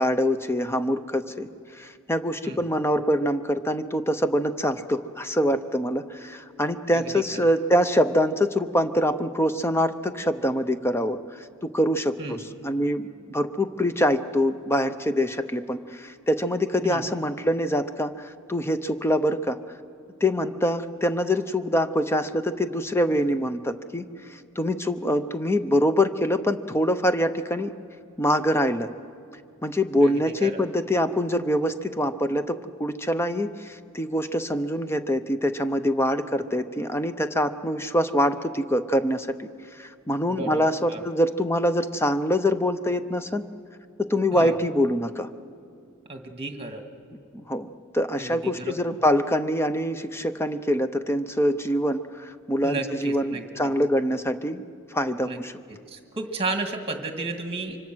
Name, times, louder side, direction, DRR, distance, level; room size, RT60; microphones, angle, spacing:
voice 1, 0.0-1.5 1.8-11.2 11.6-19.6 20.2-24.1 24.6-27.7 28.2-28.9 29.6-39.5 39.8-43.4 44.1-45.3 47.3-54.7 54.9-55.5, equal, 10° left, 10 dB, 0.7 m, -24 dB
voice 2, 6.9-7.5 12.2-12.4 16.8-17.0 30.0-30.6 40.3-41.0 44.3-44.5 46.1-46.8 48.2-48.8 52.6-53.7 55.2-55.4 55.7-57.8, right 2 dB, 25° right, 5 dB, 1.9 m, -33 dB
25.0 x 24.5 x 6.2 m, 2.3 s
head